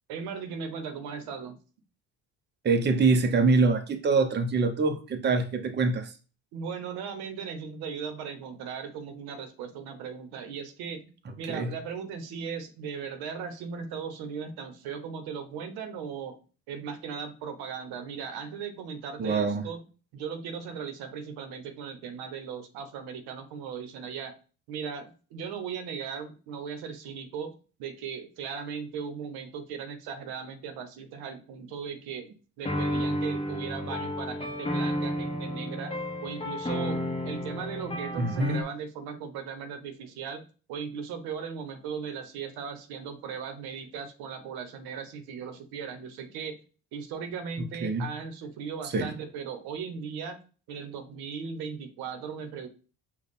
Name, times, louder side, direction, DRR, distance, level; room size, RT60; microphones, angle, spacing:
voice 1, 0.1-1.6 6.5-11.0 11.4-16.4 16.7-19.8 20.1-24.3 24.7-27.5 27.8-46.6 46.9-50.4 50.7-52.7, right 6 dB, 80° right, 8 dB, 0.9 m, -38 dB
voice 2, 2.6-6.1 11.5-11.7 19.2-19.6 38.2-38.6 47.8-48.1 48.8-49.1, right 3 dB, 30° right, 8 dB, 0.7 m, -24 dB
sound 1, 32.7-38.6, equal, 15° left, 1.1 m, -32 dB
5.2 x 2.3 x 4.1 m, 0.36 s
cardioid pair, 105°, 37 cm